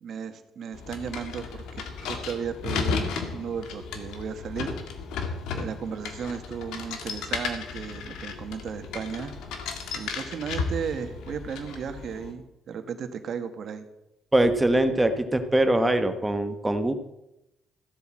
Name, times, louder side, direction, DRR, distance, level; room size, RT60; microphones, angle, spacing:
voice 1, 0.0-4.7 5.5-9.3 9.9-13.9, right 7 dB, 65° right, 8 dB, 1.6 m, -35 dB
sound 1, 0.7-12.3, left 5 dB, 85° left, 1.9 m, -34 dB
voice 2, 14.3-16.9, right 1 dB, 15° right, 8 dB, 1.2 m, -22 dB
14.5 x 8.2 x 7.6 m, 0.90 s
cardioid pair, 90°, 0 cm